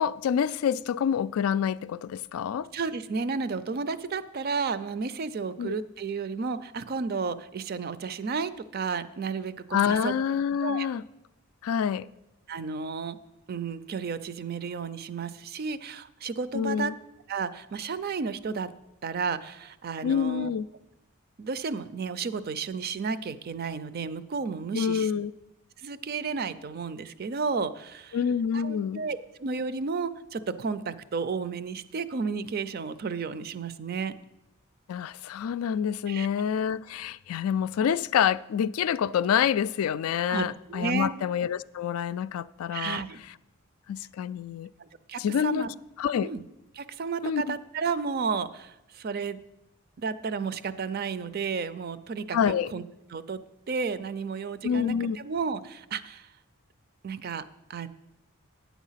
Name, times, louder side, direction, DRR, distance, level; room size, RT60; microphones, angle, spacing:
voice 1, 0.0-2.7 5.6-5.8 9.7-11.0 11.6-12.1 16.5-16.9 20.0-20.7 24.7-25.3 28.1-29.0 34.9-43.0 43.9-44.7 45.2-45.7 46.0-46.3 47.2-47.6 52.3-52.7 54.6-55.2, left 8 dB, 85° left, 0.3 m, -27 dB
voice 2, 2.7-10.1 10.6-10.9 12.5-13.2 13.5-16.9 17.3-18.7 19.0-20.5 21.4-25.1 25.8-28.2 28.5-34.1 36.1-36.3 40.3-41.1 42.7-43.2 44.8-45.7 46.2-46.4 46.7-49.4 50.0-52.8 53.1-53.4 53.7-56.3 57.0-57.4 57.7-57.9, right 5 dB, 45° right, 0.4 m, -32 dB
9.1 x 7.1 x 5.7 m
head